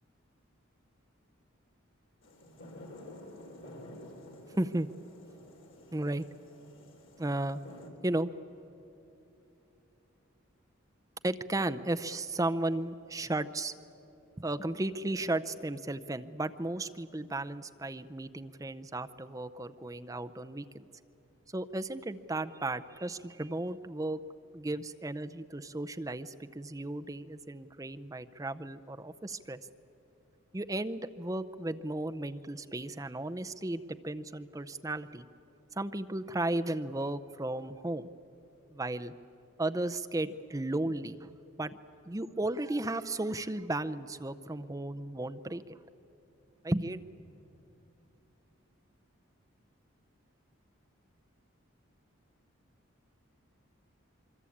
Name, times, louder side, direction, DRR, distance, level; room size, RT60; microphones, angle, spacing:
sound 1, 2.2-7.9, left 1 dB, 70° left, 3.7 m, -50 dB
voice 1, 4.6-4.9 5.9-6.3 7.2-7.6 8.0-8.3 11.2-13.7 14.4-20.9 21.5-24.2 24.5-29.7 30.5-35.3 35.8-38.0 38.7-39.1 39.6-41.3 41.6-41.7 42.1-45.8 46.6-47.0, right 2 dB, 15° right, 9 dB, 0.6 m, -34 dB
25.5 x 23.5 x 8.6 m, 3.0 s
head